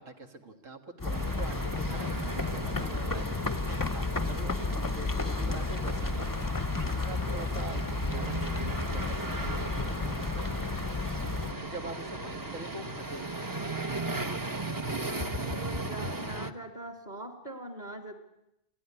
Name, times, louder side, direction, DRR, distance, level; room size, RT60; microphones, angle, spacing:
voice 1, 0.0-10.8 11.6-13.4, right 2 dB, 75° right, 5 dB, 2.2 m, -45 dB
sound 1, 1.0-11.5, left 3 dB, 20° left, 0.7 m, -32 dB
sound 2, 1.1-16.5, right 2 dB, 20° right, 0.8 m, -37 dB
sound 3, 7.6-15.7, left 1 dB, 50° right, 6.1 m, -53 dB
voice 2, 14.8-18.1, right 1 dB, 35° right, 5 dB, 2.9 m, -42 dB
25.5 x 16.5 x 9.8 m, 0.87 s
omnidirectional pair, 1.3 m